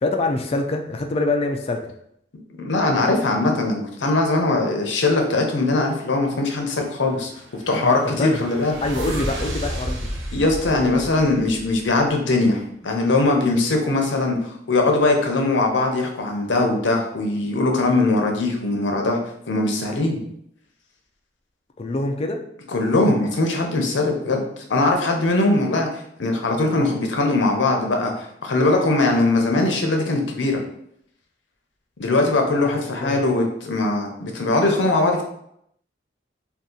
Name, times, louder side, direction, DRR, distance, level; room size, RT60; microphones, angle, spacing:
voice 1, 0.0-1.8 7.7-8.5 8.8-10.1 21.8-22.4 32.6-33.4, left 2 dB, 30° left, 4 dB, 0.3 m, -25 dB
voice 2, 2.6-7.3 7.7-8.8 10.3-19.2 19.5-20.2 22.7-24.4 24.7-25.9 26.2-30.6 32.0-35.2, left 2 dB, 70° left, 2 dB, 0.6 m, -21 dB
sound 1, 7.2-12.1, right 1 dB, 85° right, 0.6 m, -32 dB
2.7 x 2.4 x 3.7 m, 0.73 s
head